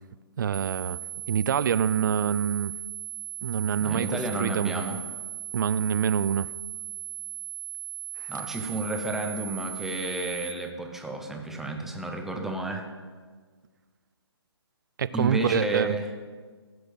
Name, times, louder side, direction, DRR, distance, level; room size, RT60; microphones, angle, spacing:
voice 1, 0.4-1.0 1.3-2.7 3.4-4.8 5.5-6.5 8.2-8.3 15.0-16.0, right 8 dB, 50° right, 0.4 m, -26 dB
sound 1, 0.5-10.5, right 13 dB, 90° right, 1.6 m, -38 dB
voice 2, 3.8-5.0 8.3-12.9 15.1-16.1, right 2 dB, ahead, 0.9 m, -31 dB
15.5 x 6.2 x 6.4 m
figure-of-eight pair, 135°, 14 cm